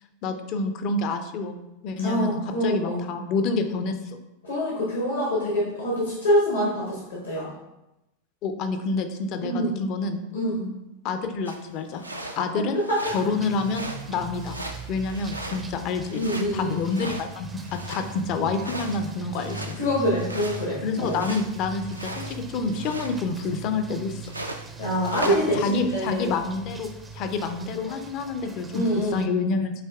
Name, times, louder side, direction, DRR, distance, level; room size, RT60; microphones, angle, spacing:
voice 1, 0.2-1.6 1.8-4.2 8.4-10.2 11.0-12.0 12.3-12.8 13.1-14.6 14.9-16.2 16.5-19.7 20.8-24.3 25.3-26.9 27.1-29.7, left 4 dB, 40° left, 7 dB, 0.5 m, -28 dB
voice 2, 2.0-3.1 4.4-7.5 9.4-9.8 10.3-10.7 12.9-13.0 16.1-16.8 19.8-21.2 24.8-26.3 28.7-29.2, equal, 70° left, -4 dB, 1.0 m, -25 dB
sound 1, 11.4-11.6 12.0-12.4 12.8-13.3 13.5-14.1 14.4-15.8 16.0-18.2 18.6-21.5 21.9-22.4 22.7-23.5 24.2-24.7 25.0-25.4, right 1 dB, 85° right, 0.4 m, -37 dB
sound 2, 13.1-29.3, right 3 dB, 15° right, 0.4 m, -41 dB
7.5 x 2.8 x 2.3 m, 0.93 s
figure-of-eight pair, 85°, 0 cm